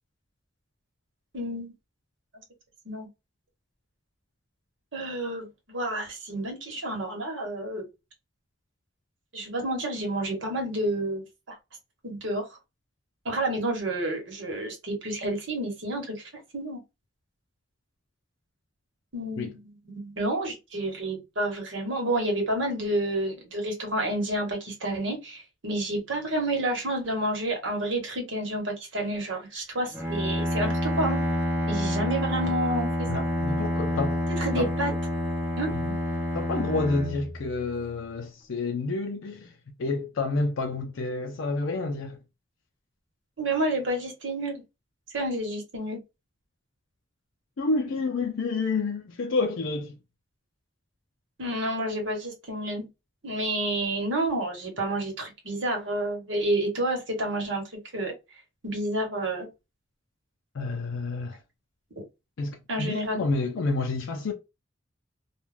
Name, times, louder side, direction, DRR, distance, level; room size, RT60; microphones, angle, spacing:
voice 1, 1.3-1.7 2.8-3.1 4.9-7.9 9.3-11.6 12.0-12.6 13.2-16.8 19.1-31.2 31.7-33.2 34.3-35.0 35.6-35.7 43.4-44.6 45.1-46.0 51.4-52.9 53.2-57.6 57.9-58.1 58.6-59.5 62.7-63.2, right 1 dB, 75° right, 1.1 m, -30 dB
Bowed string instrument, 29.9-37.9, left 1 dB, 10° right, 0.6 m, -28 dB
voice 2, 33.1-34.2 34.6-34.7 35.7-36.0 36.3-42.2 47.6-50.0 60.5-61.4 62.4-64.3, left 3 dB, 85° left, 0.5 m, -29 dB
2.4 x 2.2 x 3.2 m
head